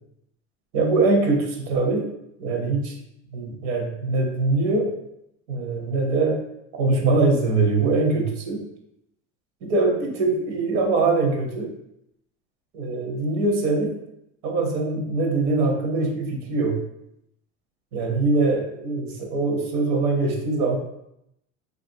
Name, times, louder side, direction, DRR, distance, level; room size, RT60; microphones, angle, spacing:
voice 1, 0.7-2.1 2.4-2.9 3.3-4.9 5.5-6.4 6.7-8.6 9.6-11.7 12.7-14.0 14.4-16.8 17.9-20.8, right 3 dB, 75° right, 2 dB, 0.8 m, -22 dB
3.1 x 2.5 x 2.7 m, 0.79 s
cardioid pair, 140°, 34 cm